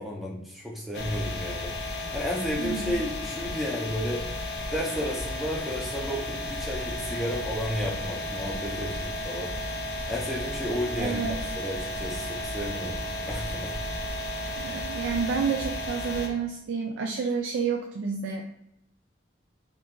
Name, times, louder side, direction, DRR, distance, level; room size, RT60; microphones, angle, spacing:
voice 1, 0.0-4.4 4.7-9.8 10.1-13.7 14.5-14.8, equal, ahead, -2 dB, 0.5 m, -33 dB
sound 1, 0.9-16.3, left 1 dB, 60° left, 0.6 m, -33 dB
voice 2, 2.6-2.9 11.0-11.4 14.6-18.5, right 5 dB, 80° right, 2 dB, 0.3 m, -30 dB
2.9 x 2.4 x 3.5 m, 0.78 s
head